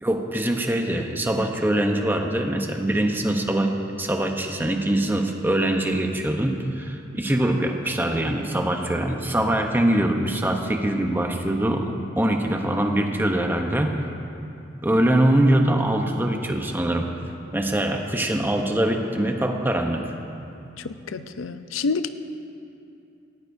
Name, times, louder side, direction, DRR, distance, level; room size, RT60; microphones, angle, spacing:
voice 1, 0.0-14.0 14.8-17.1 17.5-20.1, right 1 dB, 10° right, 3 dB, 0.8 m, -23 dB
voice 2, 20.8-22.1, left 4 dB, 85° left, 11 dB, 0.5 m, -29 dB
18.0 x 15.0 x 2.7 m, 2.6 s
head